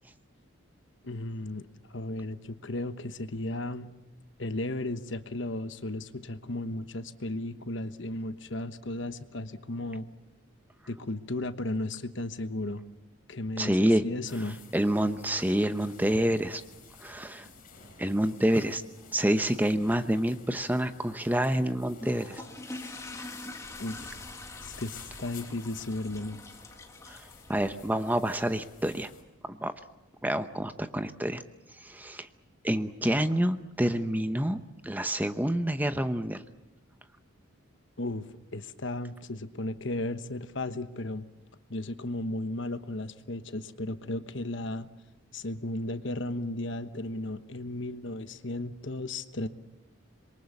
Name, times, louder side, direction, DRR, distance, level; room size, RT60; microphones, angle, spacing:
voice 1, 1.0-3.9 4.4-10.1 10.9-12.8 13.3-14.6 23.8-24.1 24.6-26.4 38.0-41.3 41.7-44.9 45.3-49.5, left 2 dB, 65° left, 11 dB, 1.2 m, -35 dB
voice 2, 13.6-14.0 14.7-16.6 17.0-17.5 18.0-18.8 19.1-22.4 27.1-29.1 29.5-29.7 30.2-31.4 31.8-32.3 32.6-36.4, right 1 dB, 10° right, 9 dB, 0.8 m, -28 dB
sound 1, 14.3-29.2, left 4 dB, 45° left, 4.8 m, -52 dB
sound 2, 21.9-28.5, left 2 dB, 15° left, 1.6 m, -45 dB
27.0 x 23.0 x 7.2 m, 1.1 s
head